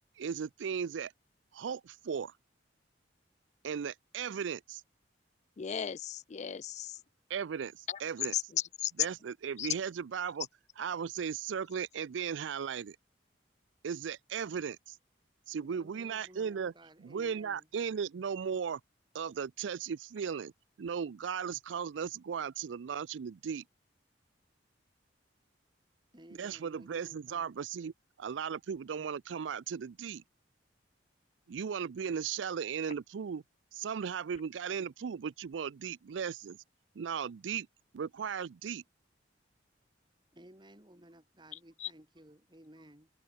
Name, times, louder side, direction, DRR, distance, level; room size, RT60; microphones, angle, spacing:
voice 1, 0.2-1.1 1.5-2.3 3.6-4.8 7.3-8.3 9.0-10.5 10.8-13.0 13.8-15.0 15.5-16.7 17.0-18.8 19.1-20.5 20.8-23.6 26.4-27.9 28.2-30.2 31.5-33.4 33.7-36.6 37.0-37.7 37.9-38.8, right 7 dB, 80° right, 0.4 m, -36 dB
voice 2, 5.6-7.0 7.9-8.0 8.3-8.9 9.6-9.7 41.8-41.9, left 10 dB, 40° left, 0.4 m, -36 dB
voice 3, 15.6-17.7 26.1-27.6 40.3-43.1, right 1 dB, 25° right, 4.1 m, -56 dB
open air
head